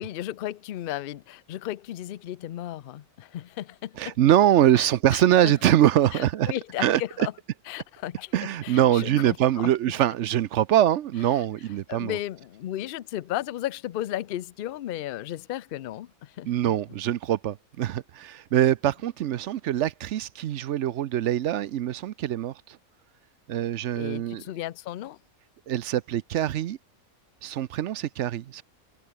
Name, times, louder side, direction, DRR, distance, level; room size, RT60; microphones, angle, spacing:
voice 1, 0.0-4.2 4.8-5.5 6.1-7.3 7.7-8.3 8.6-9.4 11.9-16.5 24.0-25.2, left 13 dB, 90° left, 0.4 m, -34 dB
voice 2, 4.0-6.5 6.8-7.3 8.3-12.2 16.4-22.8 23.5-24.4 25.7-26.8 27.4-28.6, right 12 dB, 65° right, 0.8 m, -23 dB
omnidirectional pair, 1.6 m